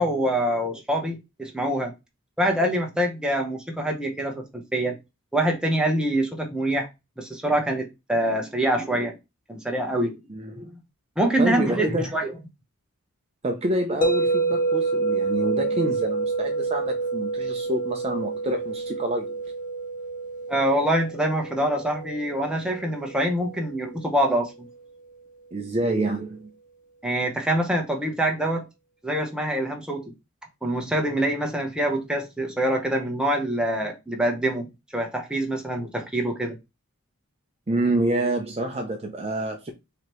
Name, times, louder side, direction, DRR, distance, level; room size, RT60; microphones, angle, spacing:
voice 1, 0.0-1.9 2.4-5.0 5.3-6.9 7.2-9.2 9.5-10.2 10.6-10.7 11.2-12.3 20.5-24.7 27.0-28.7 29.0-30.1 30.6-34.7 34.9-36.6, right 1 dB, 5° right, 0.9 m, -25 dB
voice 2, 10.3-10.7 11.4-12.2 13.4-19.4 25.5-26.5 37.7-39.7, right 1 dB, 30° right, 0.6 m, -27 dB
sound 1, 14.0-24.1, right 3 dB, 40° left, 0.6 m, -28 dB
5.0 x 2.9 x 3.0 m
head